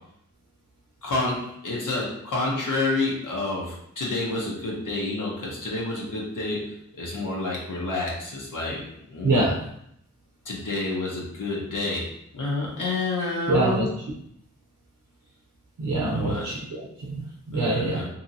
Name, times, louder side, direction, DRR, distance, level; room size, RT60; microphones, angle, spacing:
voice 1, 1.0-8.8 9.1-9.5 10.4-12.1 12.3-13.9 16.1-16.5 17.5-18.1, left 2 dB, 85° left, -3 dB, 0.8 m, -29 dB
voice 2, 9.2-9.5 13.5-13.9 15.8-18.0, right 2 dB, 75° right, -3 dB, 0.6 m, -25 dB
2.7 x 2.7 x 2.6 m, 0.74 s
wide cardioid pair, 50°, 30 cm